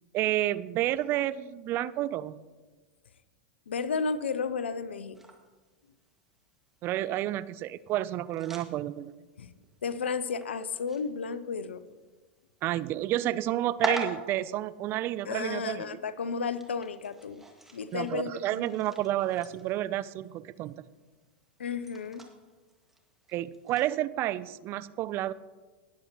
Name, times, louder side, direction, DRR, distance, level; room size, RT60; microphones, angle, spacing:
voice 1, 0.1-2.4 6.8-9.1 12.6-16.0 17.9-20.7 23.3-25.3, right 14 dB, 40° right, 18 dB, 0.4 m, -30 dB
voice 2, 3.7-5.2 9.4-9.5 9.8-11.8 15.2-17.4 17.7-18.7 21.6-22.2, left 5 dB, 85° left, 15 dB, 0.5 m, -33 dB
sound 1, 5.1-24.0, equal, 5° right, 1.8 m, -45 dB
18.5 x 7.9 x 2.9 m, 1.3 s
hypercardioid pair, 105°, 6 cm